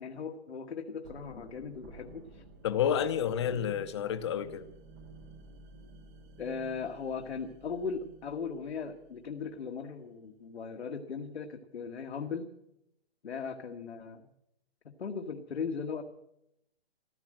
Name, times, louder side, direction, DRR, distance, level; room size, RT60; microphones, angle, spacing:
voice 1, 0.0-2.4 3.4-3.6 6.4-12.5 13.2-14.3 14.8-16.0, left 5 dB, 75° left, 3 dB, 1.6 m, -38 dB
sound 1, 1.0-9.9, right 3 dB, 15° right, 0.7 m, -53 dB
voice 2, 2.6-4.6, left 9 dB, 25° left, 11 dB, 0.8 m, -30 dB
15.0 x 12.5 x 7.7 m, 0.80 s
hypercardioid pair, 170°, 32 cm